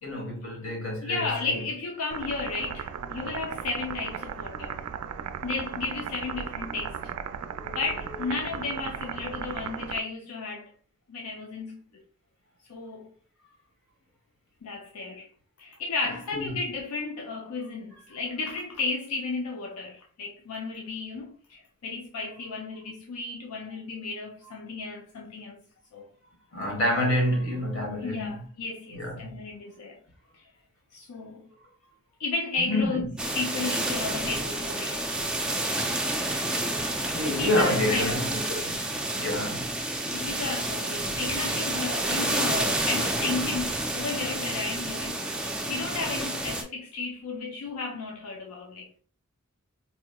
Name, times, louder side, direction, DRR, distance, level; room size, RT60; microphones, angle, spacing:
voice 1, 0.0-1.6 7.6-7.8 16.3-16.6 26.5-28.3 28.9-29.3 32.7-33.0 37.1-38.8 39.2-39.7, left 1 dB, 60° left, 1.4 m, -28 dB
voice 2, 1.0-4.8 5.4-7.0 7.6-10.7 11.1-12.0 12.7-13.1 14.6-15.3 15.6-25.6 25.9-26.1 28.0-30.0 30.4-30.5 30.9-31.5 32.2-35.1 37.3-38.2 40.1-48.9, left 3 dB, 85° left, 0.5 m, -33 dB
sound 1, 2.1-10.0, right 7 dB, 85° right, 0.3 m, -36 dB
sound 2, 33.2-46.6, right 1 dB, 5° right, 0.3 m, -29 dB
4.2 x 2.9 x 2.2 m
head